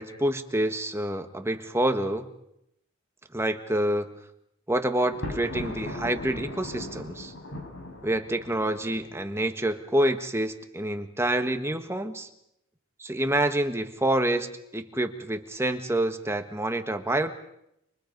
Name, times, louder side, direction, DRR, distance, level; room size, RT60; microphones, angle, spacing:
voice 1, 0.0-2.3 3.3-4.1 4.7-7.3 8.0-12.3 13.0-17.3, right 1 dB, 10° right, 7 dB, 1.5 m, -27 dB
Thunder, 5.0-9.1, left 1 dB, 65° left, 6.5 m, -38 dB
30.0 x 26.5 x 5.4 m, 0.79 s
head